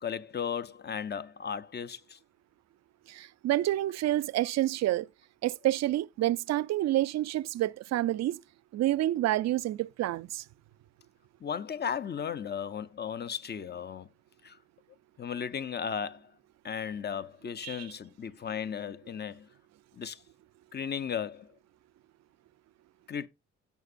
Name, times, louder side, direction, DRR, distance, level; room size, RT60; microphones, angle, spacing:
voice 1, 0.0-2.2 11.4-14.1 14.4-14.6 15.2-16.2 16.6-19.5 20.0-20.2 20.7-21.5 23.1-23.3, left 7 dB, 35° left, 0.6 m, -35 dB
voice 2, 3.1-5.1 5.4-8.4 8.7-10.4 17.6-17.9, right 14 dB, 60° right, 0.5 m, -28 dB
16.5 x 5.9 x 2.6 m
cardioid pair, 90°, 30 cm